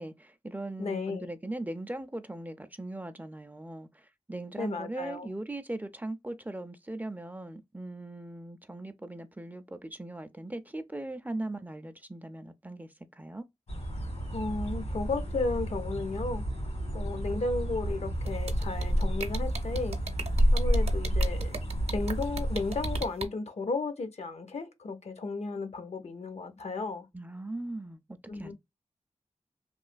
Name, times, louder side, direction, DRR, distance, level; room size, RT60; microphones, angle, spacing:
voice 1, 0.0-13.4 27.1-28.0 28.3-28.5, right 2 dB, 15° right, 0.4 m, -39 dB
voice 2, 0.8-1.3 4.6-5.3 14.3-16.4 16.9-20.0 20.5-21.6 21.9-27.1 28.3-28.5, left 3 dB, 65° left, 0.6 m, -34 dB
sound 1, 13.7-23.0, equal, 85° left, 1.7 m, -30 dB
sound 2, 18.3-23.2, right 3 dB, 60° right, 0.6 m, -36 dB
3.0 x 2.1 x 2.4 m
wide cardioid pair, 60°, 12 cm